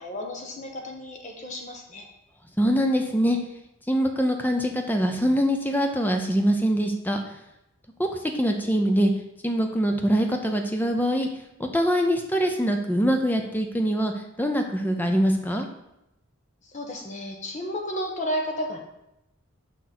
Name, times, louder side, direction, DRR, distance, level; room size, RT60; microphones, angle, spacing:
voice 1, 0.0-2.1 16.6-18.8, equal, 35° left, 1 dB, 1.1 m, -32 dB
voice 2, 2.6-3.4 3.9-7.4 8.0-9.1 9.4-11.3 11.6-14.1 14.4-15.7, equal, 10° left, 4 dB, 0.6 m, -23 dB
6.2 x 5.3 x 4.4 m, 0.87 s
head